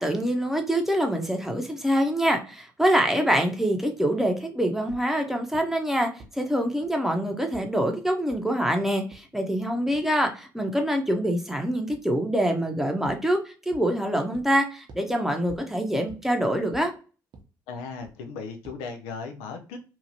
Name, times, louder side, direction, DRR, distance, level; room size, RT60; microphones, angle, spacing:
voice 1, 0.0-16.9, equal, 5° right, 3 dB, 0.7 m, -25 dB
sound 1, 4.9-5.0 5.5-5.6 6.2-6.3 6.8-6.9 7.5-7.6 8.3-8.4 9.1-9.2 9.9-10.0 11.9-12.0 13.1-13.2 13.7-13.8 14.3-14.4 14.9-15.0 15.5-15.6 16.1-16.2 16.7-16.8 17.3-17.4 18.0-18.1 18.6-18.7, right 3 dB, 50° right, 0.7 m, -45 dB
voice 2, 17.7-19.8, left 5 dB, 80° left, 5 dB, 0.4 m, -37 dB
2.8 x 2.4 x 2.7 m, 0.35 s
hypercardioid pair, 50°, 10 cm